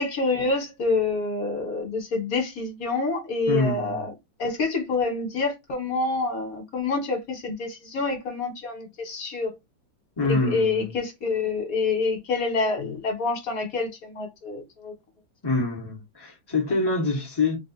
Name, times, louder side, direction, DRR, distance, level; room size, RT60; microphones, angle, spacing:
voice 1, 0.0-4.1 4.4-9.5 10.3-14.9, left 3 dB, 50° left, 1.4 m, -27 dB
voice 2, 3.5-4.1 10.2-10.9 15.4-17.6, left 3 dB, 25° left, 0.5 m, -25 dB
3.1 x 2.3 x 4.0 m
omnidirectional pair, 2.1 m